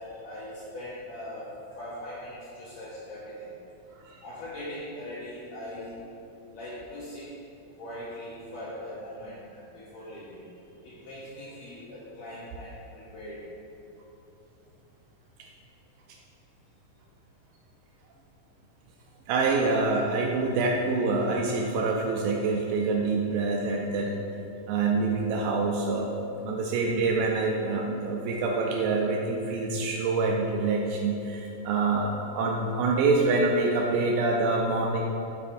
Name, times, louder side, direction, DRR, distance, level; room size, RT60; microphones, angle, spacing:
voice 1, 0.0-3.5 4.2-6.1 6.5-7.4 7.8-10.6 10.8-13.5, left 1 dB, 75° left, -6 dB, 1.6 m, -41 dB
voice 2, 3.9-4.2 19.3-24.2 24.7-26.1 26.4-35.0, right 3 dB, 80° right, 0 dB, 2.2 m, -26 dB
9.5 x 5.7 x 2.6 m, 2.8 s
omnidirectional pair, 4.2 m